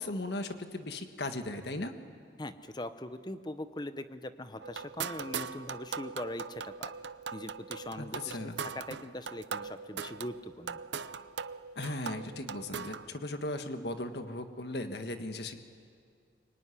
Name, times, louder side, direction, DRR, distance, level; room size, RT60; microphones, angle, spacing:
voice 1, 0.0-1.9 8.0-8.6 11.7-15.6, left 2 dB, 60° left, 7 dB, 1.6 m, -37 dB
voice 2, 2.4-6.9 7.3-10.8, left 1 dB, 25° left, 11 dB, 0.9 m, -41 dB
sound 1, 4.6-13.1, right 6 dB, 70° right, 0.7 m, -40 dB
24.5 x 24.0 x 10.0 m, 2.2 s
head